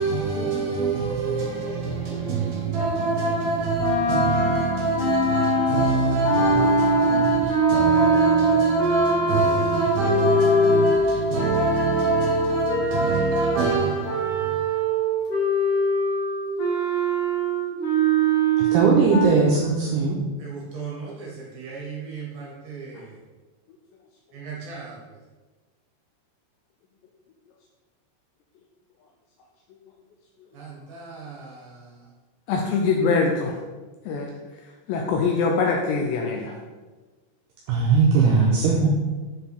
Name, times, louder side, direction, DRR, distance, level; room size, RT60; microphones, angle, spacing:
voice 1, 0.0-14.6 20.4-23.1 24.3-25.0 30.5-31.7, right 3 dB, 65° right, 2.7 m, -25 dB
sound 1, 3.8-13.6 14.0-19.3, right 1 dB, 55° left, 2.3 m, -23 dB
voice 2, 18.7-20.2 37.7-38.9, right 4 dB, 85° right, 2.3 m, -19 dB
voice 3, 32.5-33.6 34.1-34.3 34.9-36.6, left 4 dB, 85° left, 2.5 m, -23 dB
7.7 x 4.5 x 3.4 m
omnidirectional pair, 5.4 m